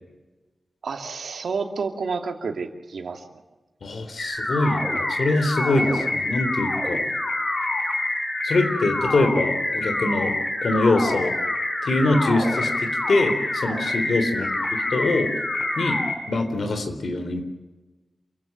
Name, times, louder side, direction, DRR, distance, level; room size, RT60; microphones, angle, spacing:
voice 1, 0.8-3.2 14.4-14.5, right 4 dB, 75° right, 5 dB, 2.5 m, -30 dB
voice 2, 3.8-7.0 8.4-11.3 11.8-15.3 15.8-16.0 16.3-17.4, left 2 dB, 60° left, 8 dB, 3.7 m, -24 dB
sound 1, 4.2-16.2, left 2 dB, 30° left, 4.9 m, -26 dB
27.5 x 15.5 x 9.0 m, 1.2 s
wide cardioid pair, 165°, 0 cm